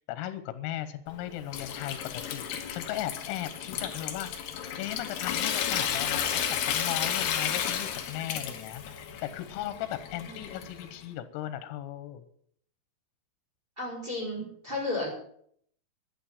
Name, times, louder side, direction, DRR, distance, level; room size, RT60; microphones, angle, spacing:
voice 1, 0.0-4.3 4.8-12.2, left 12 dB, 90° left, 11 dB, 3.6 m, -37 dB
Water tap faucet / Sink (filling or washing) / Trickle dribble, 1.1-11.0, left 9 dB, 65° left, 3.1 m, -33 dB
voice 2, 13.8-15.1, left 2 dB, 10° right, -2 dB, 4.8 m, -33 dB
11.5 x 11.0 x 7.3 m, 0.65 s
omnidirectional pair, 5.8 m